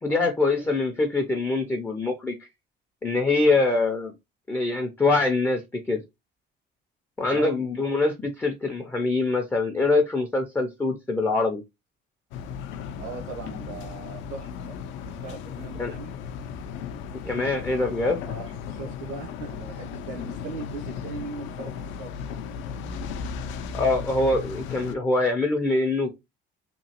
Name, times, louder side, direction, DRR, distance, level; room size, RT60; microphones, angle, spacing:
voice 1, 0.0-2.3 3.0-4.1 4.5-5.6 5.9-6.0 7.2-11.6 15.8-15.9 17.2-18.2 23.7-26.1, left 3 dB, 10° left, 0.3 m, -24 dB
voice 2, 7.3-7.6 13.0-14.8 15.2-16.1 18.2-22.1, right 4 dB, 85° right, 0.8 m, -39 dB
sound 1, 12.3-25.0, left 6 dB, 80° left, 0.4 m, -36 dB
2.9 x 2.7 x 2.7 m
cardioid pair, 145°, 20 cm